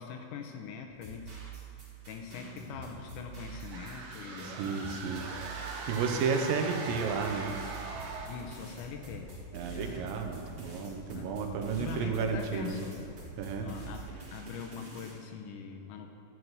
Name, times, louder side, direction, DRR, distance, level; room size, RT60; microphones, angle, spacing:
voice 1, 0.0-1.4 2.1-4.5 8.3-9.4 9.7-10.5 11.1-11.4 11.8-13.1 13.6-16.1, left 6 dB, 75° left, 3 dB, 2.2 m, -43 dB
sound 1, 0.9-15.1, right 3 dB, 30° right, 2.8 m, -46 dB
sound 2, 3.5-8.5, right 3 dB, 70° right, 1.5 m, -41 dB
voice 2, 4.4-5.2 5.9-7.5 9.5-12.8 13.4-13.7, right 5 dB, 85° right, 3 dB, 2.6 m, -32 dB
13.0 x 4.7 x 8.0 m, 2.7 s
omnidirectional pair, 3.9 m